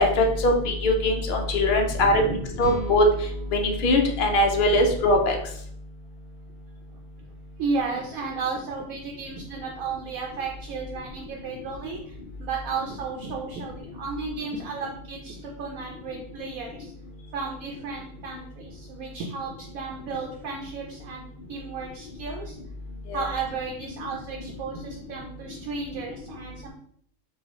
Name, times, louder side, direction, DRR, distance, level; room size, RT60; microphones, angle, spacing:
voice 1, 0.0-2.2 2.6-3.0 3.5-5.4 23.1-23.2, left 1 dB, 85° left, 3 dB, 0.4 m, -21 dB
voice 2, 1.9-2.5 4.7-5.0 7.6-16.9 17.3-22.6 23.1-26.7, right 4 dB, 75° right, 0 dB, 1.0 m, -34 dB
sound 1, 2.6-5.9, right 3 dB, 30° left, 1.0 m, -40 dB
4.7 x 2.3 x 3.0 m, 0.64 s
omnidirectional pair, 1.5 m